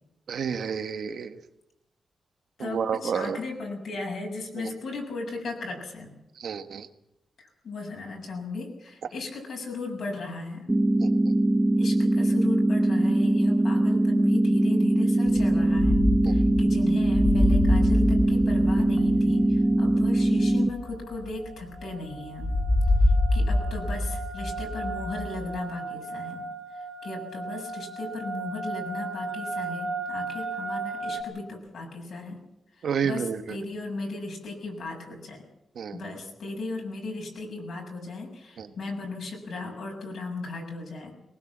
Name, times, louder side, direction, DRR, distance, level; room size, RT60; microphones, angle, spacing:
voice 1, 0.3-1.4 2.6-3.4 4.6-4.7 6.4-6.9 11.0-11.3 16.2-16.4 32.8-33.6 35.7-36.1 38.6-38.7, right 7 dB, 75° right, 9 dB, 1.5 m, -30 dB
voice 2, 2.6-6.1 7.4-10.7 11.8-22.5 23.0-26.4 26.7-32.4 32.7-35.4 35.9-41.1, left 3 dB, 65° left, 0 dB, 6.7 m, -36 dB
sound 1, 10.7-20.7, right 1 dB, 10° right, 0.7 m, -22 dB
sound 2, 15.3-21.9 22.4-25.6, left 1 dB, 45° left, 4.6 m, -26 dB
sound 3, 19.0-19.1 19.4-19.8 20.2-31.2, right 3 dB, 30° right, 2.4 m, -36 dB
21.5 x 19.5 x 7.4 m, 0.89 s
wide cardioid pair, 145°, 0 cm